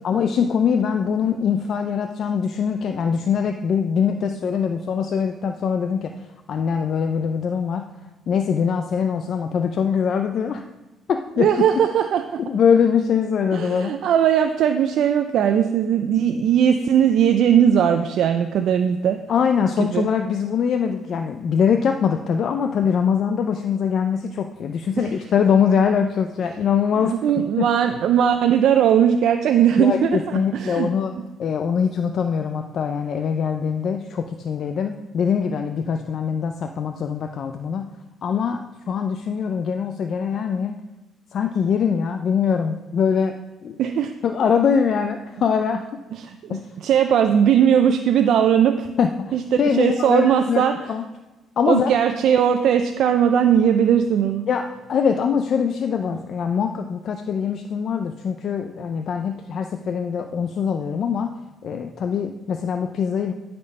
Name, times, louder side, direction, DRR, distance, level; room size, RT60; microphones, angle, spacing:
voice 1, 0.0-7.9 8.3-10.6 11.1-11.5 12.5-14.0 19.3-27.7 29.8-31.1 31.4-37.9 38.2-40.7 41.3-43.4 43.6-43.8 44.2-45.8 46.5-46.6 49.0-50.6 50.9-51.0 51.6-51.9 54.5-61.3 61.6-63.3, left 7 dB, 50° left, 6 dB, 0.5 m, -23 dB
voice 2, 11.4-12.4 13.5-19.2 19.8-20.1 25.0-25.1 27.1-30.9 43.8-44.1 46.2-48.9 49.3-50.8 51.7-54.5, right 8 dB, 65° right, 7 dB, 0.5 m, -19 dB
11.5 x 4.4 x 5.4 m, 1.1 s
cardioid pair, 135°, 0 cm